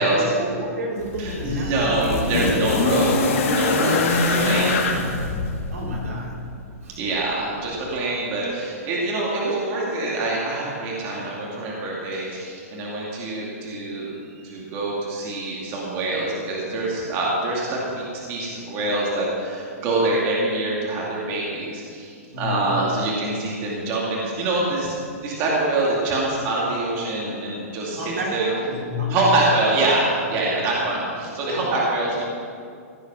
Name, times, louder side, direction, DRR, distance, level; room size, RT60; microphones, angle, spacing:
voice 1, 0.0-2.9 5.7-6.5 6.8-7.0 22.3-22.8 27.9-29.5, equal, 75° right, -3 dB, 4.0 m, -30 dB
sound 1, 1.0-6.2 7.3-7.4, left 3 dB, 55° left, 2.1 m, -23 dB
voice 2, 1.2-4.8 7.0-14.1 14.4-24.9 25.2-28.5 29.1-32.2, right 2 dB, 30° right, -4 dB, 2.4 m, -25 dB
16.5 x 8.4 x 6.1 m, 2.4 s
hypercardioid pair, 155°, 8 cm